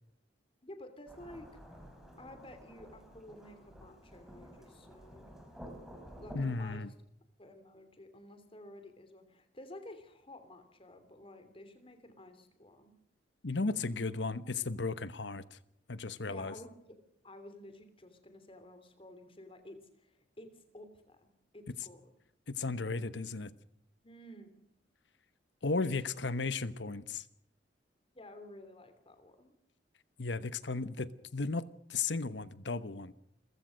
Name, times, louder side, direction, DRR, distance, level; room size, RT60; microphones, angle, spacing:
voice 1, 0.6-1.5 2.2-5.3 6.2-6.8 7.4-12.9 16.2-16.8 17.2-22.1 24.0-24.5 28.1-29.5, left 1 dB, 30° left, 3.1 m, -52 dB
Thunderstorm / Rain, 1.1-6.8, equal, ahead, 4.4 m, -51 dB
voice 2, 6.3-6.9 13.4-15.6 15.9-16.5 22.5-23.5 25.6-27.2 30.2-33.1, left 3 dB, 80° left, 1.1 m, -35 dB
28.5 x 15.5 x 6.5 m
head